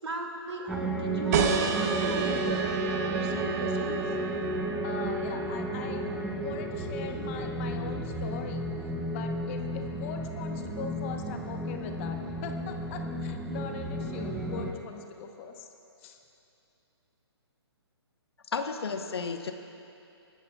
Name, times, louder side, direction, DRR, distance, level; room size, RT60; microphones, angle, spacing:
voice 1, 0.0-2.7 3.1-4.0, right 1 dB, 75° right, 2 dB, 2.4 m, -36 dB
sound 1, 0.7-14.7, right 1 dB, 5° right, 0.9 m, -33 dB
sound 2, 1.3-6.5, right 6 dB, 35° right, 1.1 m, -32 dB
voice 2, 4.8-6.1 6.4-8.7 9.1-12.2 12.4-15.7 16.0-16.2, left 7 dB, 30° left, 4 dB, 1.0 m, -41 dB
voice 3, 18.5-19.5, left 5 dB, 65° left, 6 dB, 1.1 m, -32 dB
25.5 x 13.5 x 2.4 m, 2.7 s
figure-of-eight pair, 135°, 14 cm